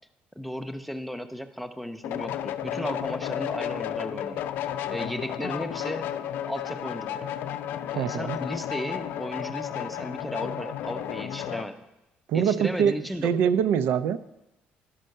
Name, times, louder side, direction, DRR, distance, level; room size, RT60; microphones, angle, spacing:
voice 1, 0.4-4.5 4.9-6.1 6.4-7.3 7.9-11.8 12.3-13.3, equal, ahead, 9 dB, 0.5 m, -35 dB
sound 1, 2.0-11.7, left 10 dB, 70° left, 0.5 m, -33 dB
voice 2, 8.0-8.4 12.3-13.0 13.2-14.2, right 8 dB, 75° right, 14 dB, 0.4 m, -23 dB
11.5 x 5.4 x 6.5 m, 0.97 s
cardioid pair, 165°, 4 cm